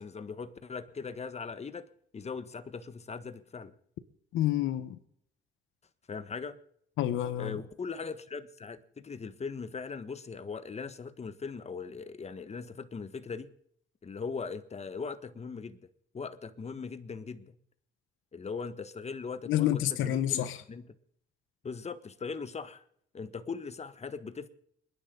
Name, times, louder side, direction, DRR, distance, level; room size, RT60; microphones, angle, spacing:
voice 1, 0.0-1.9 2.1-3.7 6.1-6.6 7.4-13.5 14.0-15.8 16.1-17.6 18.3-20.9 21.6-22.8 23.1-24.5, left 5 dB, 35° left, 1.4 m, -40 dB
voice 2, 4.3-5.0 7.0-7.6 19.4-20.6, left 12 dB, 90° left, 1.1 m, -28 dB
29.0 x 10.5 x 3.9 m
cardioid pair, 90°, 20 cm